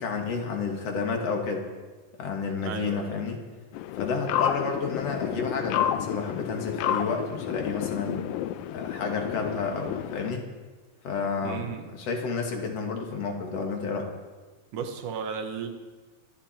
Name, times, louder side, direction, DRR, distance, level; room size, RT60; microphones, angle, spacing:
voice 1, 0.0-1.7 2.2-3.4 3.9-8.2 8.7-10.5 11.0-11.7 11.9-14.1, left 4 dB, 50° left, 2 dB, 2.8 m, -30 dB
voice 2, 2.7-3.2 11.4-11.9 14.7-15.7, right 6 dB, 65° right, 5 dB, 2.7 m, -34 dB
sound 1, 3.7-10.3, left 11 dB, 80° left, 2.4 m, -31 dB
23.0 x 14.0 x 4.5 m, 1.3 s
omnidirectional pair, 4.1 m